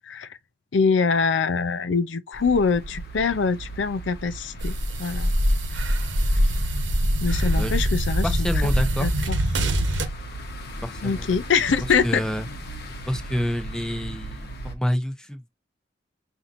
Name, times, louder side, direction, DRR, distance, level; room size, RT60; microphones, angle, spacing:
voice 1, 0.7-4.7 5.0-5.3 7.2-8.3 9.0-9.4 11.0-12.2, left 5 dB, 80° left, 0.5 m, -23 dB
sound 1, 2.3-14.7, right 1 dB, 60° left, 0.9 m, -37 dB
sound 2, 4.6-10.1, equal, 80° right, 1.0 m, -23 dB
voice 2, 8.2-9.1 10.8-11.3 12.0-12.4 13.1-15.5, equal, 5° left, 0.7 m, -28 dB
5.7 x 2.7 x 2.5 m
head